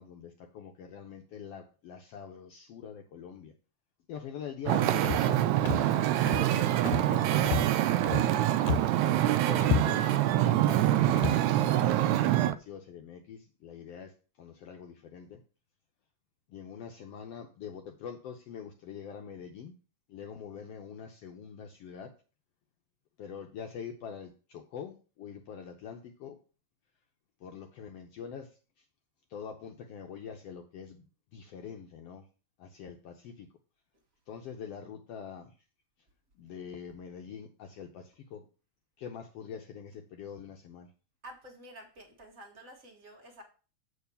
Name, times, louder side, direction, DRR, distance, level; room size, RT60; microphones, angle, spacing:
voice 1, 0.0-3.5 4.1-6.0 6.3-8.5 9.5-10.1 10.4-15.4 16.5-19.7 20.1-22.1 23.2-26.4 27.4-28.8 29.3-31.0 31.3-32.3 32.6-33.5 34.3-35.6 36.3-38.5 39.0-40.9 43.2-43.3, left 7 dB, 70° left, 4 dB, 1.6 m, -44 dB
Wind / Ocean, 4.7-12.5, right 13 dB, 80° right, 1.9 m, -25 dB
Walk footsteps, 5.0-5.4 5.7-6.0 6.3-6.6 6.9-7.2 7.4-8.4 8.6-9.0 9.3-9.4 9.6-10.2 10.7-10.8 11.2-11.4, left 11 dB, 90° left, 2.1 m, -32 dB
voice 2, 41.2-43.4, right 1 dB, 40° right, 3 dB, 1.3 m, -50 dB
7.2 x 4.6 x 6.9 m, 0.35 s
omnidirectional pair, 3.3 m